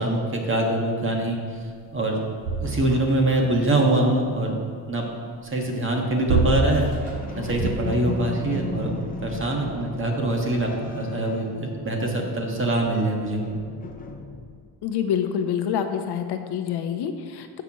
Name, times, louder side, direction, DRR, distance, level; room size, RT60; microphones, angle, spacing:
voice 1, 0.0-1.4 1.9-2.2 2.6-4.6 4.9-5.0 5.4-6.9 7.3-8.9 9.2-13.4, right 1 dB, 30° right, 0 dB, 1.6 m, -24 dB
sound 1, 1.8-1.9 2.1-3.5 5.7-8.2 8.9-9.0, right 3 dB, 80° right, 2.4 m, -27 dB
sound 2, 6.6-12.2 12.5-14.8, left 3 dB, 20° left, 0.8 m, -36 dB
voice 2, 14.8-17.6, left 8 dB, 65° left, 7 dB, 0.8 m, -27 dB
14.0 x 6.0 x 3.0 m, 2.1 s
cardioid pair, 110°, 43 cm